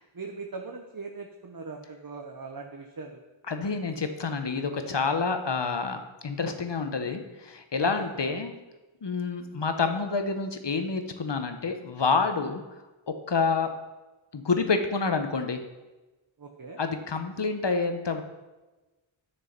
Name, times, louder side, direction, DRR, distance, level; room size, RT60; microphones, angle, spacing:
voice 1, 0.1-3.2 7.8-7.9 16.4-16.8, right 4 dB, 45° right, 2 dB, 1.0 m, -40 dB
voice 2, 3.5-8.5 9.0-12.6 13.1-13.7 14.3-15.6 16.8-18.2, left 4 dB, 60° left, 7 dB, 1.1 m, -28 dB
10.5 x 6.7 x 5.3 m, 1.1 s
wide cardioid pair, 55°, 49 cm